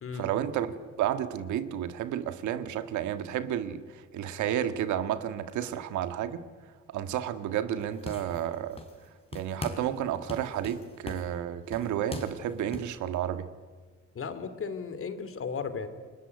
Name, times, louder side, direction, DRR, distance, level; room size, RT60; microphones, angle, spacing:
voice 1, 0.1-3.8 4.1-6.4 6.9-8.8 9.3-13.5, right 10 dB, 80° right, 1.7 m, -31 dB
sound 1, 7.8-9.1 9.3-10.0 10.3-12.9, left 2 dB, 20° left, 4.2 m, -41 dB
voice 2, 14.1-15.9, left 5 dB, 50° left, 2.9 m, -35 dB
29.0 x 20.0 x 9.7 m
cardioid pair, 100°, 29 cm